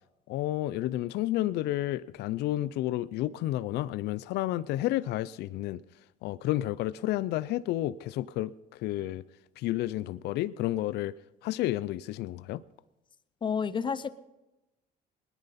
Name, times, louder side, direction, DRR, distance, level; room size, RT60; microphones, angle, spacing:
voice 1, 0.3-5.8 6.2-9.2 9.6-11.1 11.4-12.6, left 15 dB, 75° left, 0.5 m, -31 dB
voice 2, 13.4-14.1, left 6 dB, 30° left, 0.7 m, -30 dB
21.0 x 10.0 x 4.2 m
cardioid pair, 110°, 17 cm